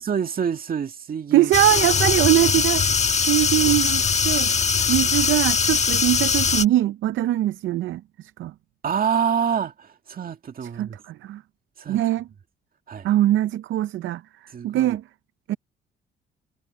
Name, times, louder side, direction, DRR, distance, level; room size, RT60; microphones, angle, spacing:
voice 1, 0.0-1.5 8.8-11.0 11.8-12.0 12.9-13.1 14.5-15.0, right 7 dB, 45° right, 2.0 m, -26 dB
voice 2, 1.3-2.9 3.2-4.5 4.9-8.5 10.8-11.4 11.9-12.3 13.0-14.2 14.6-15.0 15.5-15.6, right 14 dB, 75° right, 0.6 m, -22 dB
sound 1, 1.5-6.6, left 5 dB, 35° left, 1.3 m, -21 dB
cardioid pair, 90°, 20 cm